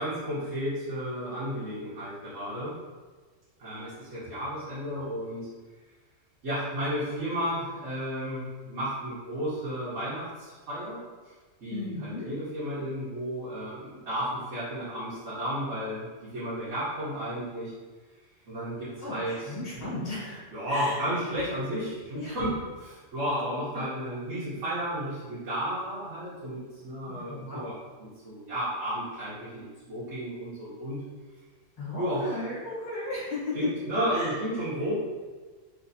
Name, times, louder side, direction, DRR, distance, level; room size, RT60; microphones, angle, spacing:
voice 1, 0.0-2.8 3.6-5.5 6.4-11.0 11.3-11.4 11.6-16.1 16.3-17.7 18.5-19.8 20.5-31.0 32.0-32.4 33.5-34.9, equal, 80° right, -12 dB, 1.4 m, -33 dB
voice 2, 11.7-12.3 19.0-20.4 20.7-21.0 22.1-22.4 23.7-23.8 27.1-27.6 31.8-33.7 34.1-34.4, left 3 dB, 35° left, -6 dB, 1.0 m, -35 dB
3.2 x 3.1 x 2.6 m, 1.4 s
omnidirectional pair, 1.3 m